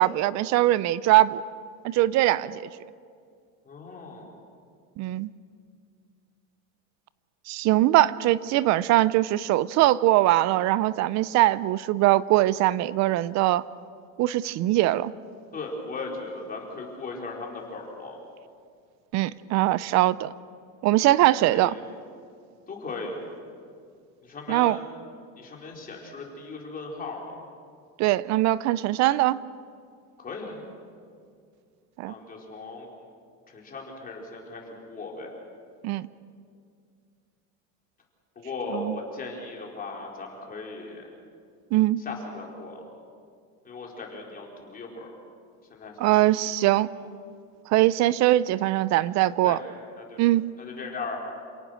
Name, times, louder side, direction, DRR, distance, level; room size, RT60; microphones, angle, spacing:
voice 1, 0.0-1.4 1.8-2.6 5.0-5.3 7.5-13.6 14.2-15.1 19.1-20.3 20.8-21.7 24.5-24.8 28.0-29.4 32.0-32.1 35.8-36.1 38.7-39.0 41.7-42.0 46.0-46.9 47.7-49.6 50.2-50.4, right 16 dB, 50° right, 19 dB, 0.5 m, -21 dB
voice 2, 3.7-4.4 15.5-18.2 21.4-21.8 22.7-23.2 24.2-24.8 25.4-27.3 30.2-30.6 32.1-32.9 33.5-35.3 38.4-41.1 42.0-42.9 43.6-45.1 45.7-46.5 47.0-47.1 49.4-49.6 50.0-50.2 50.6-51.2, left 3 dB, 25° left, -1 dB, 4.2 m, -38 dB
28.5 x 18.0 x 6.4 m, 2.2 s
cardioid pair, 145°, 37 cm